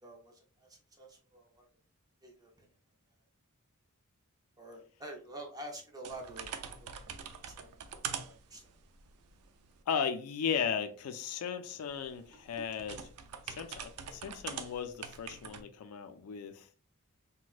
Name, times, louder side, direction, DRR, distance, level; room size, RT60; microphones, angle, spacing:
voice 1, 0.0-1.7 2.2-2.7 4.6-6.5 6.8-7.2 7.5-7.7 8.1-8.7 12.3-12.4, right 1 dB, 15° right, 0.6 m, -48 dB
sound 1, 6.0-9.8 11.9-15.6, right 7 dB, 85° right, 0.4 m, -44 dB
voice 2, 9.9-13.0 13.5-16.7, left 7 dB, 80° left, 0.4 m, -36 dB
4.0 x 2.2 x 2.4 m
head